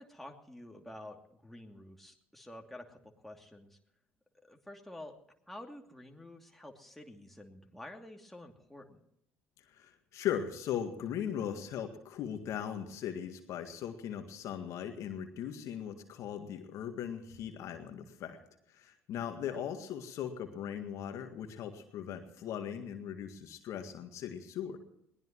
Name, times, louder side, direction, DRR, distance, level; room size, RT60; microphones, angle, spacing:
voice 1, 0.0-3.8 4.4-5.2 5.5-9.0 19.5-19.6, left 1 dB, 5° left, 2 dB, 2.7 m, -49 dB
voice 2, 9.7-18.4 18.7-24.8, left 9 dB, 55° left, 6 dB, 1.9 m, -39 dB
21.5 x 18.5 x 3.1 m, 0.78 s
figure-of-eight pair, 55°, 6 cm